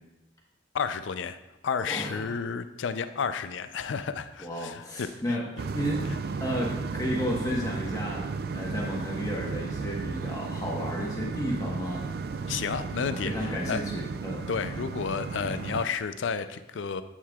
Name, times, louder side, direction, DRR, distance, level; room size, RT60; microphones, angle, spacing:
voice 1, 0.7-1.4 1.6-5.4 6.1-6.2 12.5-13.8 14.5-17.0, left 6 dB, 80° left, 11 dB, 0.4 m, -31 dB
voice 2, 1.9-2.3 4.4-5.4 5.7-6.1 6.4-8.2 8.5-12.0 13.1-14.5, equal, 20° left, -3 dB, 1.2 m, -32 dB
sound 1, 5.6-15.9, right 4 dB, 55° right, 0.3 m, -34 dB
8.4 x 7.4 x 2.4 m, 1.0 s
head